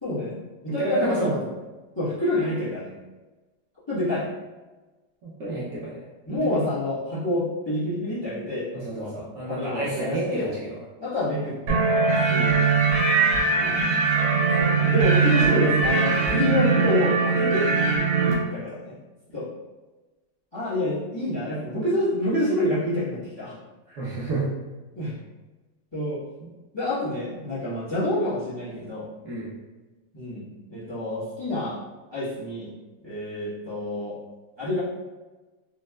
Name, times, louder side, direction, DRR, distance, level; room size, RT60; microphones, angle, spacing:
voice 1, 0.0-1.4 2.0-2.9 3.9-4.2 6.3-9.1 9.5-10.4 11.0-12.6 13.6-13.8 14.6-17.7 18.5-18.9 19.3-19.5 20.5-23.6 23.9-24.0 24.9-25.2 25.9-26.2 26.7-29.1 30.1-30.4 30.7-31.8 32.1-32.7 33.0-34.2 34.6-34.8, left 1 dB, 25° left, -11 dB, 0.5 m, -27 dB
voice 2, 0.7-1.3 5.2-6.0 6.4-6.7 8.7-10.8 18.2-18.4 24.0-24.5 26.4-26.5 29.2-29.5, right 2 dB, 65° right, -7 dB, 1.1 m, -30 dB
sound 1, 11.7-18.3, right 4 dB, 85° right, 1.4 m, -21 dB
4.1 x 2.0 x 2.2 m, 1.2 s
omnidirectional pair, 2.2 m